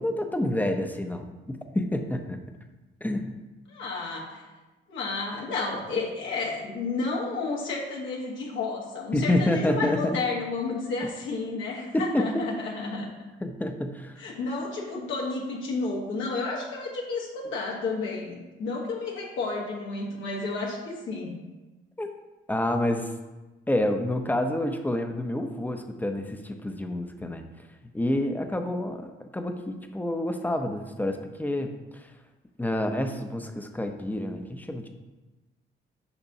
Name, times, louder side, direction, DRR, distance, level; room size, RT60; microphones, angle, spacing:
voice 1, 0.0-2.4 3.0-3.4 9.1-10.2 11.9-12.4 13.4-14.2 22.0-22.1 22.5-23.1 23.7-27.4 27.9-32.1 32.6-34.9, left 1 dB, 10° left, 5 dB, 0.6 m, -28 dB
voice 2, 3.7-4.4 4.9-13.1 14.2-21.4, left 3 dB, 75° left, -3 dB, 1.2 m, -31 dB
6.9 x 5.2 x 2.7 m, 1.1 s
cardioid pair, 90°, 20 cm